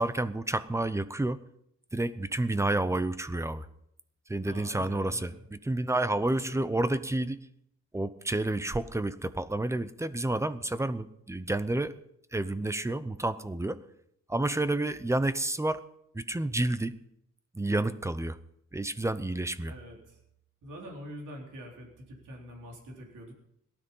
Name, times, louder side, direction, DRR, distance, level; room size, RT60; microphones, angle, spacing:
voice 1, 0.0-1.4 1.9-3.7 4.3-7.5 7.9-12.0 12.3-13.8 14.3-15.8 16.1-16.9 17.5-18.4 18.7-19.7, right 2 dB, 10° right, 14 dB, 0.7 m, -30 dB
voice 2, 4.4-5.4 6.4-6.6 19.7-20.2 20.6-23.3, equal, 85° right, 0 dB, 4.0 m, -45 dB
18.0 x 13.0 x 5.5 m, 0.75 s
wide cardioid pair, 130°, 30 cm